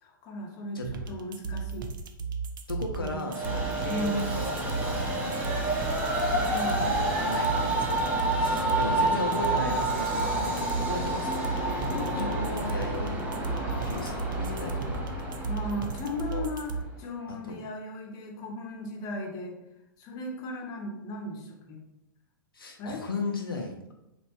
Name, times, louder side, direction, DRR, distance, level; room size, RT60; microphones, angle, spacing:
voice 1, 0.0-0.8 1.1-1.9 3.0-3.3 3.9-4.3 6.4-6.9 9.0-9.3 11.7-12.3 15.5-16.7 17.0-19.6 20.0-21.8 22.8-23.0, left 1 dB, 30° left, 1 dB, 0.7 m, -36 dB
sound 1, 0.8-16.8, right 5 dB, 70° right, 0.4 m, -35 dB
voice 2, 2.7-5.4 6.8-8.1 8.4-11.5 11.8-13.3 13.8-15.0 16.3-16.4 17.3-17.6 22.5-23.9, left 3 dB, 85° left, 2 dB, 0.4 m, -36 dB
Train, 3.3-16.8, right 1 dB, 15° right, 0.6 m, -29 dB
2.8 x 2.1 x 2.8 m, 0.88 s
figure-of-eight pair, 110°, 12 cm